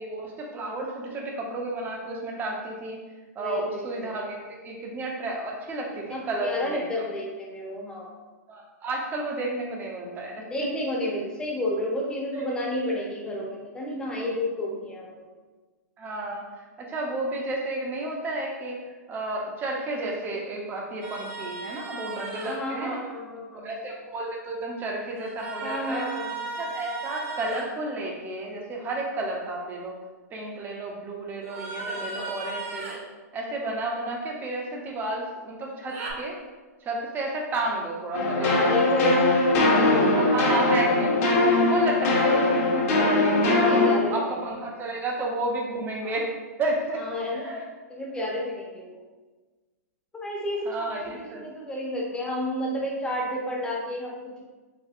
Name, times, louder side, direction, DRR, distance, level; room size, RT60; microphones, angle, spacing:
voice 1, 0.0-3.0 3.3-4.4 4.6-7.0 8.5-10.4 12.9-13.0 16.0-23.0 23.5-26.1 26.6-30.0 30.3-33.0 33.3-36.4 36.8-39.0 40.1-41.2 41.6-46.3 46.6-47.0 47.4-47.6 50.7-51.4, right 2 dB, 20° right, -1 dB, 0.7 m, -32 dB
voice 2, 3.4-4.2 6.1-8.2 10.4-15.2 22.4-23.7 25.6-26.6 31.9-32.4 38.3-40.4 43.6-44.2 44.5-44.7 46.0-46.2 47.0-49.0 50.1-54.4, left 1 dB, 10° left, -3 dB, 0.8 m, -31 dB
sound 1, 21.0-22.6 25.2-27.7 31.4-33.0 35.9-36.1, right 3 dB, 60° right, 0.9 m, -36 dB
sound 2, 38.1-44.0, left 2 dB, 50° left, 1.0 m, -21 dB
4.3 x 3.1 x 2.5 m, 1.3 s
hypercardioid pair, 135°, 9 cm